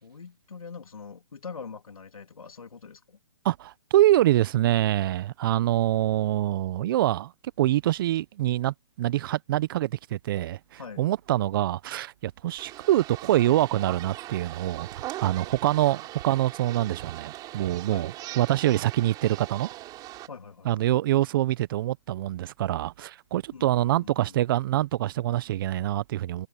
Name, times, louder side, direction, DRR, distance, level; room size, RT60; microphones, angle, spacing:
voice 1, 0.0-3.2 10.8-11.0 17.9-18.1 20.3-20.9 23.5-24.4, left 5 dB, 80° left, 3.5 m, -43 dB
voice 2, 3.4-7.3 7.6-19.7 20.6-26.5, right 14 dB, 40° right, 0.9 m, -25 dB
sound 1, 12.6-20.3, right 16 dB, 20° right, 3.9 m, -40 dB
hypercardioid pair, 140°, 18 cm